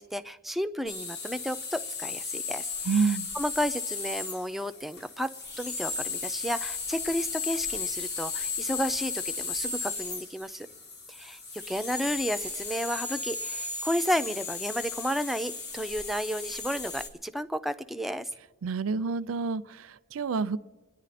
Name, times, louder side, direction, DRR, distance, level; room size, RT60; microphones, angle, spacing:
voice 1, 0.0-10.7 11.1-18.3, equal, ahead, 9 dB, 0.4 m, -32 dB
sound 1, 0.9-17.1, left 4 dB, 55° left, 1.6 m, -35 dB
voice 2, 2.9-3.3 18.6-20.6, right 5 dB, 80° right, 14 dB, 0.5 m, -28 dB
28.0 x 10.5 x 4.2 m, 1.3 s
head